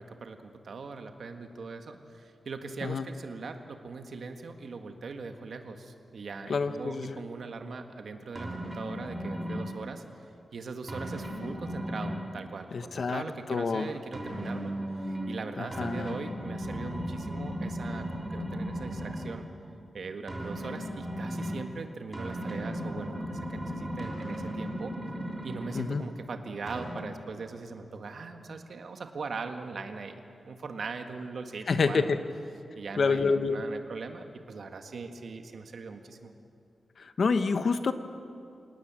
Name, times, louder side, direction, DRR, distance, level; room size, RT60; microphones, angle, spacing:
voice 1, 0.0-10.0 10.5-19.5 19.9-24.9 25.4-32.2 32.7-36.3, right 4 dB, 60° right, 6 dB, 1.7 m, -40 dB
voice 2, 6.5-7.2 12.7-13.2 13.5-13.9 15.6-16.1 25.7-26.0 31.7-32.2 33.0-33.6 37.0-37.9, left 4 dB, 55° left, 10 dB, 1.1 m, -27 dB
sound 1, 8.4-9.7 10.9-12.2 14.1-15.4 15.7-19.4 20.3-21.6 22.1-26.1 26.7-26.9, equal, 15° right, 3.5 m, -36 dB
27.0 x 18.5 x 7.5 m, 2.6 s
wide cardioid pair, 165°, 0 cm